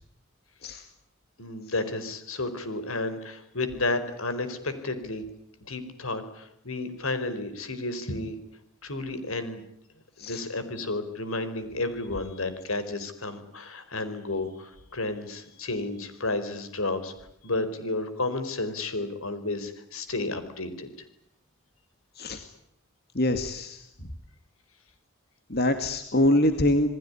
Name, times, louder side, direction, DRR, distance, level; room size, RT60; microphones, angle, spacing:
voice 1, 1.4-5.2 5.7-8.4 8.8-9.6 10.2-17.1 17.4-20.9, left 2 dB, 80° left, 11 dB, 4.6 m, -32 dB
voice 2, 23.1-23.9 25.5-26.9, left 1 dB, 50° left, 7 dB, 2.1 m, -24 dB
28.5 x 20.0 x 9.8 m, 0.77 s
head